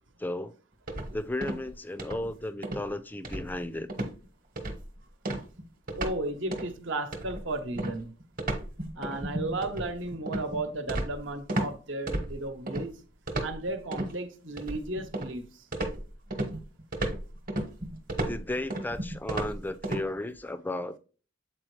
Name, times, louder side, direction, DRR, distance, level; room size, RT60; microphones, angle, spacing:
voice 1, 0.2-0.5 1.1-3.9 18.3-21.0, left 1 dB, 10° left, 0.4 m, -34 dB
sound 1, 0.9-1.7 2.0-2.3 2.6-2.9 3.2-3.6 3.9-4.2 4.6-4.9 5.2-6.2 6.5-6.7 7.1-11.7 12.1-12.8 13.3-14.1 14.6-15.4 15.7-20.0, right 1 dB, 45° right, 1.1 m, -33 dB
voice 2, 5.9-8.1 9.0-13.0 13.4-15.4, right 2 dB, 70° right, 1.0 m, -34 dB
7.5 x 4.4 x 3.2 m
head